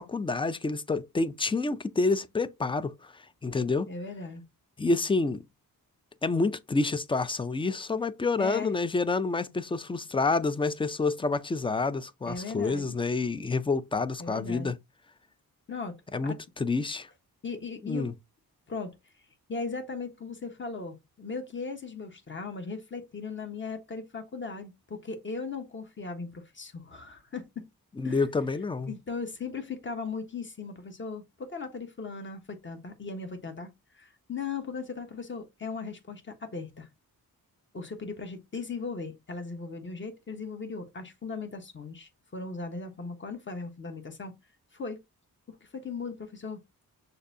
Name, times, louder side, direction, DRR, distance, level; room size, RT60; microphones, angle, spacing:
voice 1, 0.0-3.1 3.4-3.9 4.8-5.4 6.2-14.8 16.1-17.1 17.8-18.1 28.0-28.9, left 3 dB, 15° left, 0.3 m, -28 dB
voice 2, 3.9-4.4 8.4-8.7 12.2-13.0 14.2-14.7 15.7-16.4 17.4-18.1 18.7-18.9 19.5-27.6 28.0-28.2 28.9-36.9 37.7-44.3 44.7-45.0 45.6-46.6, left 4 dB, 30° left, 1.1 m, -38 dB
6.4 x 2.6 x 2.7 m
wide cardioid pair, 105°, 37 cm